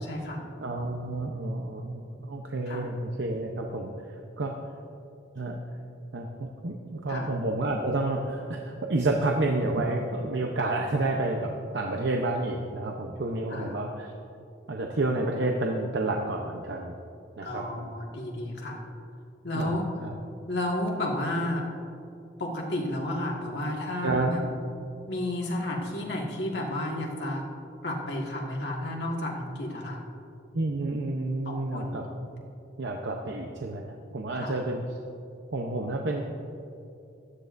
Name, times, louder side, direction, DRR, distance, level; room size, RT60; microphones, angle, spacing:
voice 1, 0.0-0.4 2.7-2.9 7.1-7.3 13.5-13.8 17.4-18.8 19.4-19.9 20.5-21.7 22.4-24.4 25.1-27.4 27.8-30.0 31.5-32.0 34.4-34.6, left 1 dB, 70° left, -1 dB, 1.8 m, -32 dB
voice 2, 0.6-4.6 5.4-5.6 6.1-14.1 14.7-16.9 17.4-17.9 19.5-20.1 24.0-24.3 30.5-32.0 32.8-33.8 34.1-35.0 35.5-36.2, right 2 dB, 75° right, 1 dB, 0.8 m, -30 dB
16.0 x 12.5 x 2.6 m, 2.6 s
head